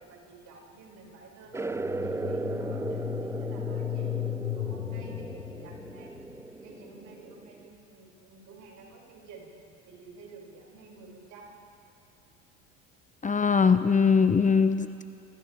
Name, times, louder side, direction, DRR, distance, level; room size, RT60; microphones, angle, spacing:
voice 1, 0.0-4.2 4.5-6.2 6.6-9.5 9.9-11.6, right 4 dB, 60° right, -3 dB, 6.5 m, -50 dB
sound 1, 1.5-7.7, right 3 dB, 10° right, 0.4 m, -36 dB
sound 2, 1.7-6.5, left 16 dB, 75° left, 1.0 m, -36 dB
voice 2, 13.2-15.0, left 5 dB, 25° left, 11 dB, 0.8 m, -22 dB
28.0 x 26.5 x 3.6 m, 2.5 s
hypercardioid pair, 70°, 33 cm